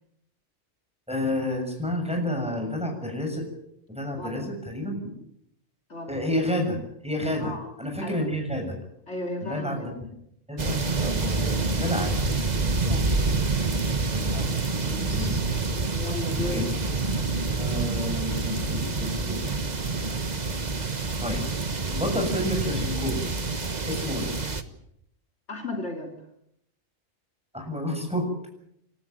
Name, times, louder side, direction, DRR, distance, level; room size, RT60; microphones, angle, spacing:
voice 1, 1.1-3.5 3.9-5.0 6.1-6.8 7.0-7.5 7.8-8.7 9.4-9.9 10.5-12.3 14.1-14.5 15.0-15.4 16.4-16.7 17.6-19.4 21.2-21.4 21.9-23.3 23.9-24.3 27.5-28.3, left 1 dB, 5° right, 2 dB, 7.0 m, -30 dB
voice 2, 4.1-4.5 5.9-6.2 7.4-7.7 8.0-8.2 9.1-9.9 12.9-13.1 14.7-15.5 15.9-16.6 25.5-26.1, left 2 dB, 55° left, 2 dB, 3.6 m, -35 dB
sound 1, 10.6-24.6, right 3 dB, 35° right, 1.4 m, -27 dB
29.5 x 13.5 x 9.2 m, 0.76 s
omnidirectional pair, 1.4 m